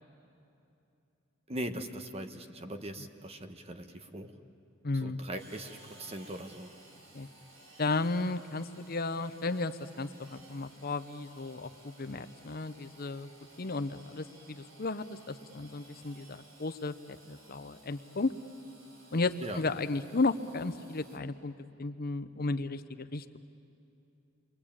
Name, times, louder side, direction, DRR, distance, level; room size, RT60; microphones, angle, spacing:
voice 1, 1.5-4.3 5.0-6.7 19.4-19.6, right 1 dB, 30° right, 7 dB, 1.3 m, -40 dB
voice 2, 4.8-5.2 7.1-7.3 7.8-13.3 13.6-18.3 19.1-21.5 21.8-23.4, left 3 dB, 50° left, 11 dB, 0.8 m, -34 dB
Engine / Sawing, 5.4-21.2, right 1 dB, 70° right, 3.4 m, -57 dB
29.5 x 23.0 x 8.8 m, 2.7 s
head